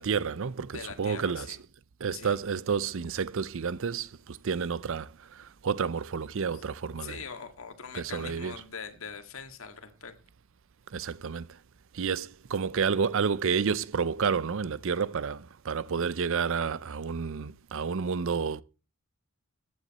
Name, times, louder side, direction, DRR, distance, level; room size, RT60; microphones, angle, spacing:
voice 1, 0.0-1.6 2.0-7.2 7.9-8.6 10.9-11.5 11.9-18.6, right 6 dB, 60° right, 0.5 m, -30 dB
voice 2, 0.7-1.6 2.1-2.4 6.5-6.6 7.0-10.2, left 6 dB, 65° left, 1.8 m, -42 dB
14.5 x 9.6 x 4.2 m
head